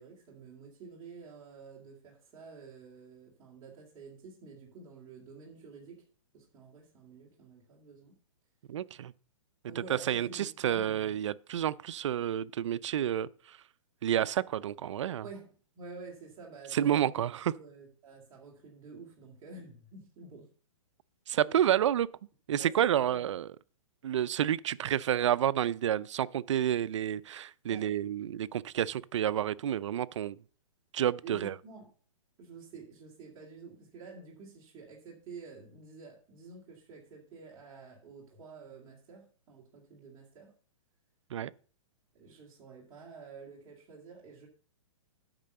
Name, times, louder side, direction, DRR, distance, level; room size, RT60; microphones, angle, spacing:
voice 1, 0.0-6.0 6.3-8.1 9.7-11.2 15.2-20.5 21.3-21.9 22.6-23.3 27.7-27.9 31.2-31.9 32.4-40.5 42.1-44.5, right 4 dB, 20° right, 2.3 m, -49 dB
voice 2, 8.7-9.1 9.9-13.6 14.0-15.2 16.7-17.5 21.3-22.1 22.5-23.5 24.0-30.4 30.9-31.5 41.3-41.5, right 10 dB, 60° right, 0.4 m, -29 dB
8.8 x 5.5 x 6.7 m
hypercardioid pair, 165°, 17 cm